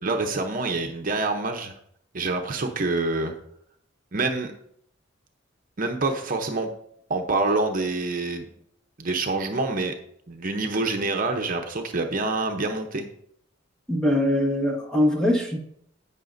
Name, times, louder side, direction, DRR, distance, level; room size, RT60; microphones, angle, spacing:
voice 1, 0.0-1.7 2.1-3.3 4.1-4.5 5.8-6.7 7.1-8.5 9.0-9.9 10.3-13.1, right 3 dB, 45° right, 4 dB, 0.8 m, -26 dB
voice 2, 13.9-15.6, left 1 dB, 5° left, 0 dB, 1.4 m, -22 dB
11.0 x 8.4 x 2.6 m, 0.69 s
head